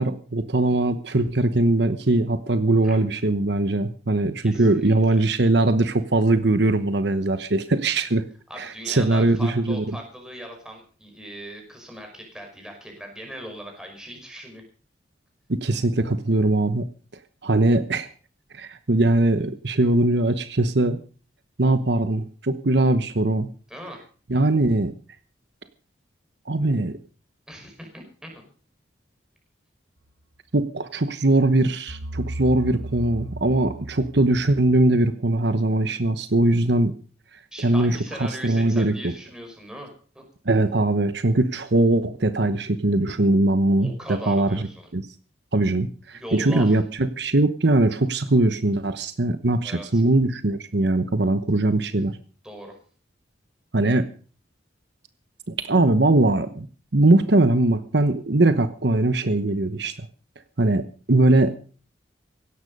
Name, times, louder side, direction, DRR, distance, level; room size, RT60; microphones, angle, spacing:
voice 1, 0.0-8.2 8.6-10.0 15.5-16.9 17.4-18.1 18.5-21.0 21.6-23.5 24.3-24.9 26.5-26.9 30.5-36.9 37.6-38.9 40.5-45.0 45.5-52.2 53.7-54.0 55.6-56.7 56.9-60.1 60.6-61.5, right 2 dB, 65° right, 10 dB, 1.0 m, -21 dB
voice 2, 4.4-5.2 8.5-14.6 23.7-24.0 27.5-28.5 37.5-39.9 40.2-40.3 43.8-44.9 46.1-46.8 49.6-50.0 52.4-52.7, equal, 5° right, 2 dB, 5.4 m, -39 dB
sound 1, 31.9-35.0, right 1 dB, 85° right, 2.1 m, -35 dB
17.0 x 13.0 x 5.4 m, 0.41 s
head